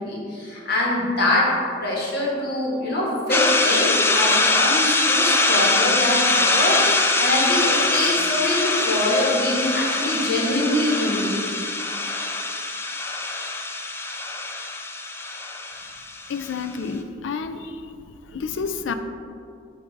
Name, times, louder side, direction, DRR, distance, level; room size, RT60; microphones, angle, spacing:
voice 1, 0.0-1.5 1.8-11.4, left 1 dB, 60° left, -4 dB, 1.4 m, -24 dB
sound 1, 3.3-16.6, left 2 dB, 15° left, 0.4 m, -23 dB
voice 2, 16.3-17.7 18.3-18.9, left 5 dB, 80° left, 9 dB, 0.4 m, -29 dB
6.6 x 2.7 x 5.3 m, 2.4 s
head